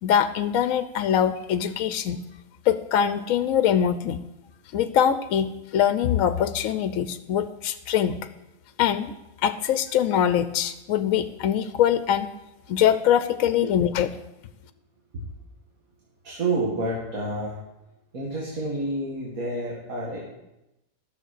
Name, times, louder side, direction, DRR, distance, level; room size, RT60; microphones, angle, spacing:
voice 1, 0.0-2.2 2.7-4.2 4.7-8.2 8.8-9.1 9.4-12.3 12.7-14.1, left 9 dB, 75° left, 11 dB, 1.0 m, -23 dB
voice 2, 16.2-17.6 18.1-20.2, right 2 dB, 75° right, -3 dB, 2.3 m, -29 dB
12.5 x 6.7 x 6.5 m, 0.94 s
omnidirectional pair, 1.5 m